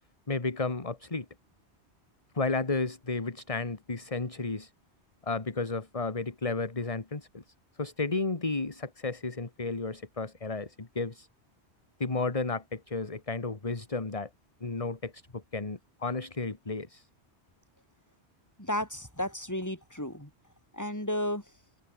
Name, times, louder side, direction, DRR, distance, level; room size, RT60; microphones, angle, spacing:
voice 1, 0.3-1.3 2.3-4.7 5.2-7.4 7.8-11.3 12.0-14.3 14.6-17.1, left 3 dB, 30° left, 1.7 m, -33 dB
voice 2, 18.6-20.3 20.7-21.4, left 1 dB, 15° left, 4.6 m, -33 dB
omnidirectional pair, 1.2 m